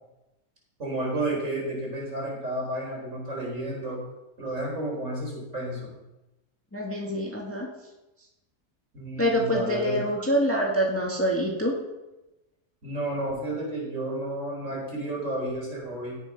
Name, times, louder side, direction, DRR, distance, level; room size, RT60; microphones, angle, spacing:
voice 1, 0.8-4.0 4.4-5.9 8.9-10.0 12.8-16.2, right 1 dB, 55° right, -3 dB, 5.0 m, -31 dB
voice 2, 6.7-7.7 9.2-11.7, equal, 10° left, -1 dB, 1.8 m, -25 dB
17.0 x 7.0 x 5.9 m, 0.98 s
omnidirectional pair, 1.6 m